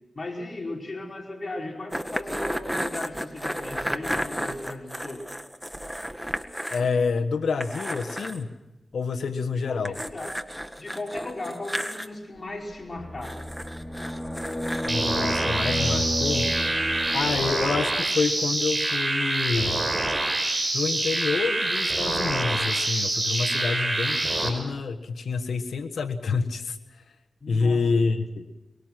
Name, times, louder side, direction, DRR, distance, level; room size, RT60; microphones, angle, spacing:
voice 1, 0.1-5.3 9.7-10.4 10.8-13.5 27.4-28.0, left 2 dB, 45° left, 0 dB, 5.0 m, -36 dB
sound 1, 1.9-6.9 7.2-7.3 7.6-8.4 9.8-12.1 13.2-14.9, equal, 5° right, 1.7 m, -33 dB
voice 2, 6.7-8.5 8.9-10.0 14.8-16.5 17.1-19.8 20.7-26.8 27.5-28.5, left 4 dB, 90° left, 7 dB, 1.4 m, -27 dB
sound 2, 13.0-17.4, left 1 dB, 20° left, 2.7 m, -31 dB
sound 3, 14.9-24.5, right 2 dB, 30° right, 5.1 m, -26 dB
23.0 x 23.0 x 6.1 m, 1.1 s
cardioid pair, 45°, 0 cm